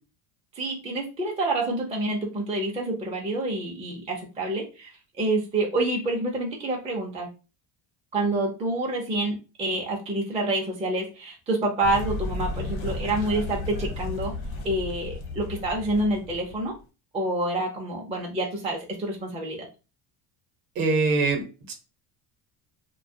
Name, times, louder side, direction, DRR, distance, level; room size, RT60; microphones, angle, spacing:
voice 1, 0.6-4.9 5.2-7.3 8.1-14.3 14.6-16.7 17.1-19.7, right 2 dB, 15° right, -1 dB, 0.4 m, -27 dB
sound 1, 11.8-16.7, left 2 dB, 80° left, 1.0 m, -33 dB
voice 2, 20.8-21.7, right 3 dB, 45° right, 5 dB, 0.8 m, -24 dB
2.2 x 2.1 x 2.6 m, 0.31 s
cardioid pair, 120°, 47 cm